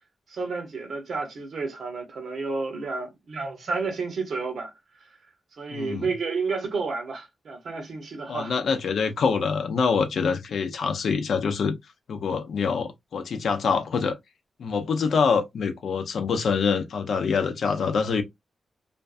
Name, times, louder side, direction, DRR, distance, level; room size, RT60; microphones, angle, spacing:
voice 1, 0.3-4.7 5.0-5.1 5.6-8.5, right 4 dB, 70° right, 0.9 m, -31 dB
voice 2, 5.7-6.1 8.3-11.8 12.1-14.2 14.6-18.2, left 5 dB, 75° left, 0.5 m, -25 dB
2.5 x 2.2 x 2.4 m
cardioid pair, 60°, 0 cm